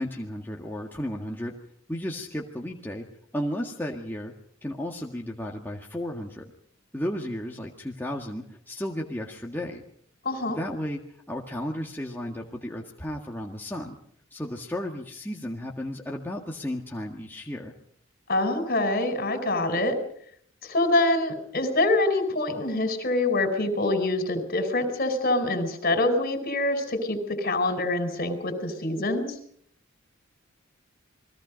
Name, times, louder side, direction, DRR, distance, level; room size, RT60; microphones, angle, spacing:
voice 1, 0.0-1.6 1.9-3.1 3.3-4.3 4.6-6.5 6.9-9.8 10.5-11.0 11.3-14.0 14.3-17.7, left 1 dB, 10° left, -1 dB, 1.8 m, -33 dB
voice 2, 10.2-10.6 18.3-20.0 20.7-29.3, left 2 dB, 50° left, 7 dB, 4.8 m, -25 dB
29.0 x 21.5 x 5.3 m, 0.65 s
head